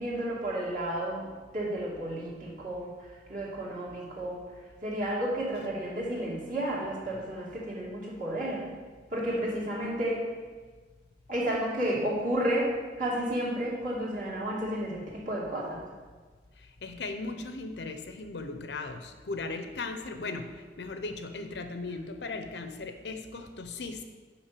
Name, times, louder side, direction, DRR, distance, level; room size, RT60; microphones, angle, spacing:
voice 1, 0.0-2.9 3.3-4.4 4.8-8.7 9.1-10.2 11.3-15.9, right 1 dB, 50° right, -5 dB, 2.3 m, -32 dB
voice 2, 16.8-20.5 20.8-24.0, left 3 dB, 75° left, 7 dB, 0.7 m, -37 dB
6.0 x 5.2 x 6.7 m, 1.4 s
head